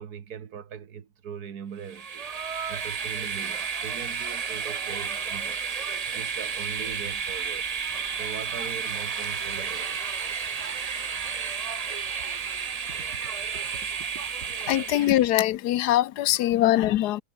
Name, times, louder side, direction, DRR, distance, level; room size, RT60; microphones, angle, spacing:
voice 1, 0.0-7.7 8.2-10.0 12.8-14.8 16.5-16.6, right 8 dB, 75° right, 1.9 m, -41 dB
Train, 1.8-15.3, right 6 dB, 40° right, 0.5 m, -32 dB
voice 2, 14.7-17.2, left 14 dB, 90° left, 1.3 m, -22 dB
omnidirectional pair, 1.7 m